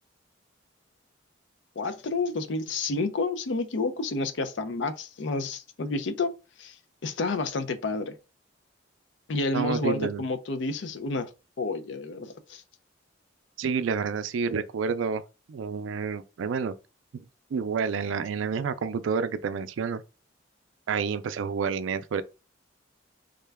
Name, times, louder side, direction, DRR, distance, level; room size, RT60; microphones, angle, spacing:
voice 1, 1.8-6.3 6.6-6.7 7.0-8.2 9.3-11.3 11.6-12.6, left 3 dB, 75° left, 0.5 m, -30 dB
voice 2, 9.5-10.2 13.6-15.2 15.5-16.7 17.1-17.2 17.5-20.0 20.9-22.2, right 6 dB, 85° right, 0.4 m, -29 dB
3.6 x 2.2 x 3.4 m
head